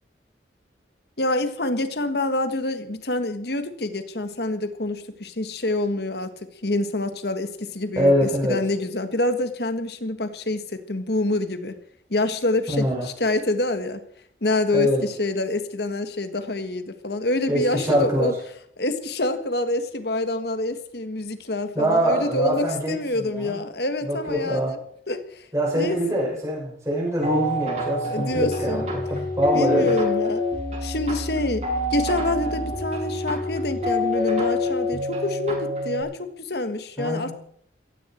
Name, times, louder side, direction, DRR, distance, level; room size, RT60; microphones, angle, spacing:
voice 1, 1.2-6.3 6.6-11.8 12.1-14.0 14.4-18.3 18.8-24.8 25.1-25.5 25.7-26.0 28.0-28.9 29.5-30.4 30.8-37.3, left 2 dB, 60° left, 9 dB, 1.6 m, -26 dB
voice 2, 8.0-8.6 12.7-13.1 14.7-15.0 17.5-18.3 21.7-23.6 24.0-24.7 25.5-29.9 37.0-37.3, equal, 15° right, -5 dB, 5.9 m, -24 dB
sound 1, 27.2-36.0, left 2 dB, 35° right, 6.7 m, -27 dB
16.0 x 15.5 x 4.5 m, 0.65 s
head